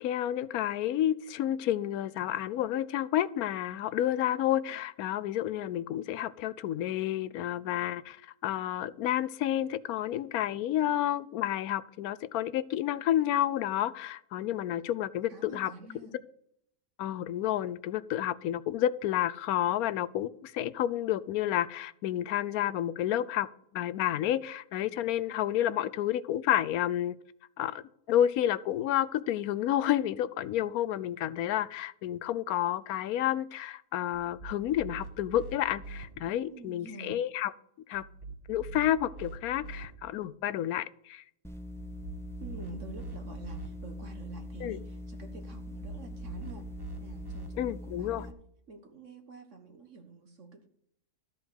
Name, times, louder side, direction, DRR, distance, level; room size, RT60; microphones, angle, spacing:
voice 1, 0.0-15.7 17.0-23.5 23.7-27.1 27.6-27.8 28.1-37.5 37.9-38.0 38.5-41.2 44.6-44.8 47.6-48.2, left 12 dB, 80° left, 17 dB, 1.0 m, -30 dB
voice 2, 15.3-16.2 36.5-37.2 42.4-46.7 47.0-48.3 48.7-50.7, right 3 dB, 55° right, 5 dB, 1.5 m, -48 dB
sound 1, 34.1-36.1 37.9-39.9 41.7-43.7 45.6-47.5, right 3 dB, 15° right, 1.3 m, -44 dB
sound 2, 41.4-48.3, left 1 dB, 5° left, 0.3 m, -42 dB
13.5 x 4.9 x 7.9 m, 0.72 s
omnidirectional pair, 1.6 m